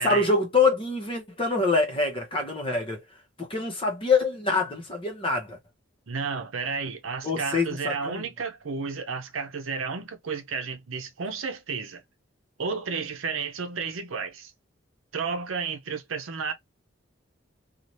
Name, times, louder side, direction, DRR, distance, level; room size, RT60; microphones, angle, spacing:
voice 1, 0.0-3.0 3.5-5.6 7.2-8.2, left 3 dB, 25° left, 0.9 m, -25 dB
voice 2, 6.1-12.0 12.6-14.5 15.1-16.5, right 5 dB, 85° right, 0.7 m, -32 dB
2.8 x 2.4 x 3.0 m
head